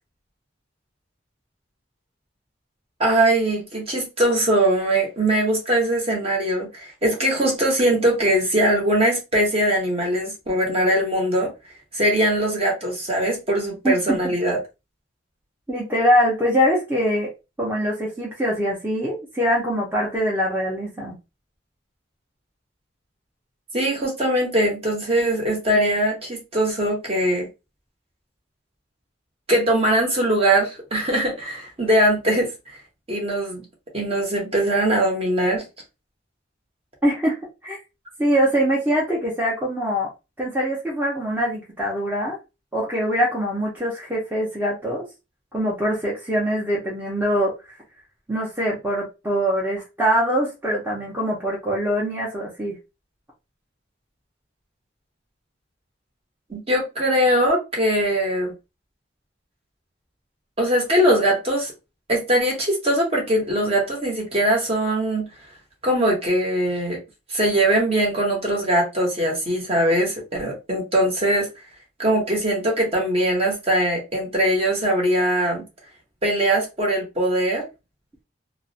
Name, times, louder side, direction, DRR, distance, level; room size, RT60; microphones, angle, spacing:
voice 1, 3.0-11.5 11.9-14.6 23.7-27.5 29.5-32.8 33.1-33.6 33.9-35.6 56.5-58.5 60.6-61.7 62.1-65.3 65.8-67.0 67.3-71.5 72.0-75.6 76.2-77.7, right 1 dB, 30° right, 0.8 m, -21 dB
voice 2, 15.7-17.3 17.6-21.1 37.0-37.4 37.6-37.8 38.2-40.1 40.4-42.4 42.7-45.1 45.5-47.5 48.3-52.7, equal, 10° right, 0.6 m, -23 dB
2.4 x 2.0 x 2.6 m
head